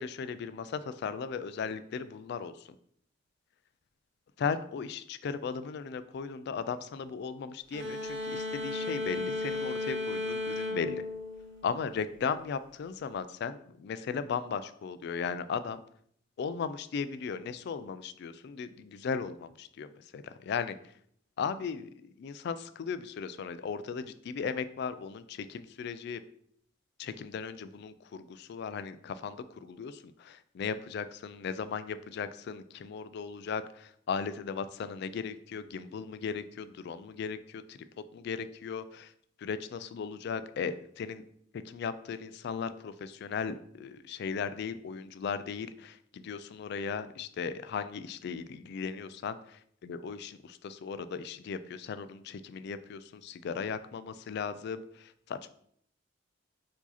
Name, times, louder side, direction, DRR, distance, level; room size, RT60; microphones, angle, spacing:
voice 1, 0.0-2.7 4.4-11.0 11.6-15.8 16.4-20.7 21.4-26.2 27.0-37.8 38.1-39.1 39.4-41.2 41.5-55.5, left 6 dB, 55° left, 13 dB, 0.3 m, -37 dB
sound 1, 7.7-12.2, left 2 dB, 80° right, 0.9 m, -35 dB
4.7 x 2.8 x 4.0 m, 0.66 s
head